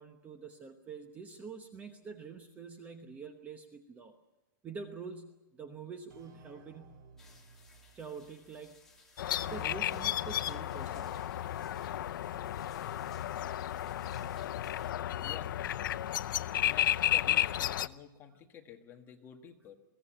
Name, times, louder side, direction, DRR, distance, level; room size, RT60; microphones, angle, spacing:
voice 1, 0.0-4.1 4.6-7.0 7.9-8.8 9.4-11.2, right 5 dB, 15° right, 7 dB, 1.0 m, -46 dB
sound 1, 6.1-9.7, right 4 dB, 60° right, 2.5 m, -60 dB
sound 2, 7.2-14.9, left 3 dB, 5° left, 2.8 m, -61 dB
sound 3, 9.2-17.9, left 12 dB, 80° left, 0.6 m, -33 dB
voice 2, 15.2-15.6 16.4-19.7, left 9 dB, 20° left, 3 dB, 1.6 m, -50 dB
22.0 x 16.5 x 8.9 m, 1.0 s
supercardioid pair, 170°, 11 cm